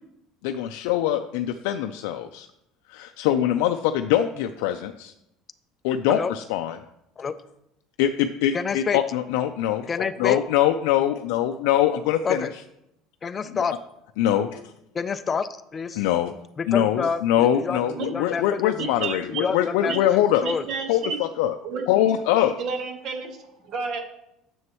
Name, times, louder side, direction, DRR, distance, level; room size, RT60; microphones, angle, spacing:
voice 1, 0.4-2.5 2.9-5.1 5.8-6.8 8.0-12.6 13.5-13.6 14.2-14.7 16.0-16.3 16.7-20.4 20.9-21.6 21.9-22.5, left 11 dB, 85° left, 0.4 m, -23 dB
voice 2, 8.5-9.0 9.9-10.4 12.2-12.5 13.2-13.7 14.9-16.0 16.6-18.7 19.3-20.6, left 5 dB, 20° left, 0.4 m, -28 dB
voice 3, 18.8-19.4 19.9-20.0 20.4-21.2 21.6-21.9 22.6-24.0, right 5 dB, 45° right, 1.3 m, -31 dB
9.5 x 7.0 x 3.0 m
cardioid pair, 160°, 0 cm